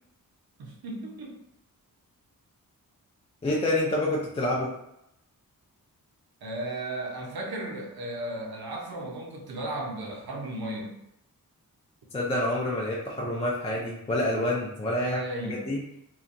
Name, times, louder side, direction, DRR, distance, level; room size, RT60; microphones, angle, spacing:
voice 1, 0.6-1.4 6.4-11.0 15.0-15.7, right 1 dB, 90° right, 1 dB, 0.6 m, -35 dB
voice 2, 3.4-4.7 12.1-15.8, left 1 dB, 20° left, -4 dB, 0.4 m, -28 dB
2.8 x 2.2 x 2.5 m, 0.82 s
wide cardioid pair, 125°, 36 cm